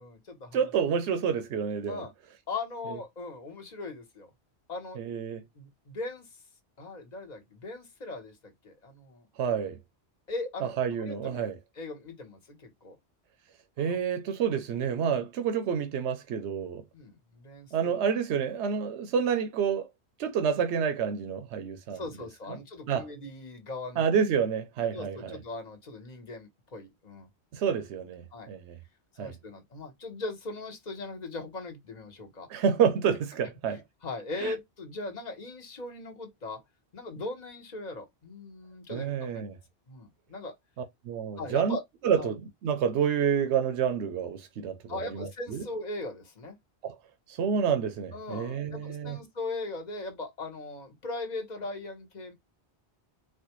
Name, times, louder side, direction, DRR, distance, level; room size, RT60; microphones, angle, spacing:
voice 1, 0.0-0.6 1.9-2.1 2.5-4.3 4.7-5.0 5.5-6.3 6.8-9.3 10.3-10.7 11.0-11.5 11.7-13.0 13.8-14.0 16.9-17.9 21.9-24.0 24.9-27.3 28.3-28.5 29.1-32.5 33.4-36.6 36.9-39.5 39.9-40.5 41.4-41.8 42.2-42.3 44.9-46.6 48.1-52.3, left 2 dB, 40° left, 1.2 m, -39 dB
voice 2, 0.5-2.0 5.0-5.4 9.4-9.8 10.8-11.6 13.8-16.8 17.7-19.9 20.2-22.0 22.5-22.6 22.9-23.1 24.0-25.4 27.5-28.8 29.2-29.3 32.5-33.8 34.4-34.5 38.9-39.6 41.0-41.8 42.0-45.6 46.8-47.0 47.3-49.2, right 7 dB, 85° right, 0.9 m, -28 dB
4.3 x 2.2 x 3.0 m
omnidirectional pair, 1.1 m